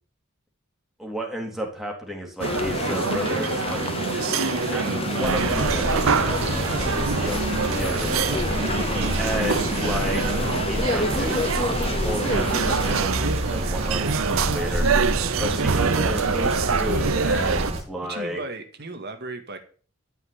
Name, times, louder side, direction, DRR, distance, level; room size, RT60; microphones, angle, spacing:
voice 1, 1.0-3.8 4.7-6.7 7.0-8.5 9.2-10.2 10.7-11.5 11.8-15.0 15.4-18.4, equal, ahead, -1 dB, 3.6 m, -32 dB
sound 1, 2.4-13.0, left 3 dB, 30° left, 0.8 m, -29 dB
sound 2, 2.4-17.7, right 5 dB, 80° right, 0.7 m, -26 dB
sound 3, 5.2-17.8, right 1 dB, 30° right, 3.0 m, -28 dB
voice 2, 18.1-19.6, right 3 dB, 50° right, 6 dB, 1.9 m, -35 dB
13.5 x 5.8 x 8.8 m, 0.43 s
head